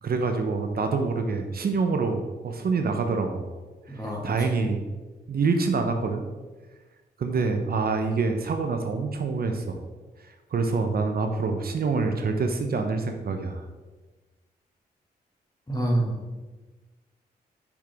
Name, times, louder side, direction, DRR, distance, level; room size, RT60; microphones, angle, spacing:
voice 1, 0.0-3.5 3.9-4.9 5.3-6.2 7.2-9.8 10.5-13.6, right 4 dB, 60° right, 5 dB, 0.7 m, -26 dB
voice 2, 3.9-4.5 15.7-16.2, right 1 dB, 20° left, -1 dB, 1.8 m, -27 dB
6.1 x 5.9 x 3.5 m, 1.2 s
cardioid pair, 60°, 17 cm